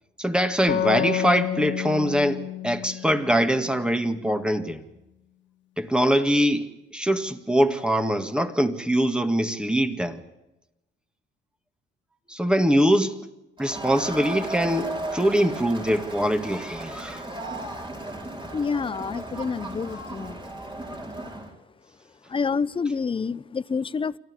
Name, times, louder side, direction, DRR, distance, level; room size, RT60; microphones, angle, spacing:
voice 1, 0.2-4.8 5.8-10.2 12.3-13.2 13.6-17.2, equal, 5° right, 1.9 m, -23 dB
sound 1, 0.7-4.2, left 11 dB, 70° left, 1.8 m, -30 dB
Crowd, 13.6-21.5, right 1 dB, 25° right, 4.6 m, -35 dB
voice 2, 18.5-20.5 22.3-24.2, left 5 dB, 25° left, 0.7 m, -28 dB
26.0 x 14.0 x 9.7 m
cardioid pair, 90°, 20 cm